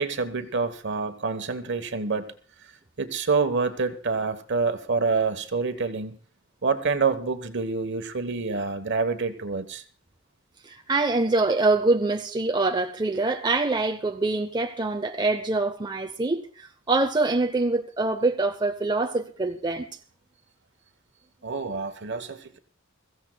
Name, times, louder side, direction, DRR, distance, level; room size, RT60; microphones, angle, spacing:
voice 1, 0.0-2.2 3.0-6.2 6.6-9.8 21.4-22.6, right 4 dB, 60° right, 1.2 m, -27 dB
voice 2, 10.6-19.9, right 3 dB, 20° right, 0.7 m, -25 dB
22.5 x 15.0 x 2.3 m
head